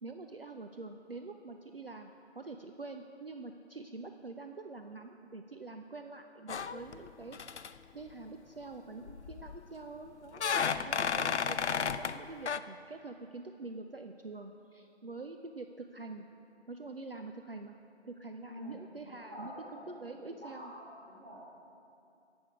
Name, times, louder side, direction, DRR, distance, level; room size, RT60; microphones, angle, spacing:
voice 1, 0.0-7.4 7.9-10.4 10.8-16.3 16.7-17.7 18.0-20.7, right 3 dB, 55° right, 5 dB, 0.5 m, -46 dB
sound 1, 6.5-7.1 7.3-7.7 9.1-9.6 10.3-12.2 12.5-12.6, left 6 dB, 75° left, 0.5 m, -32 dB
voice 2, 18.4-21.4, equal, 10° right, -13 dB, 1.4 m, -49 dB
17.0 x 6.2 x 4.8 m, 2.6 s
figure-of-eight pair, 170°, 34 cm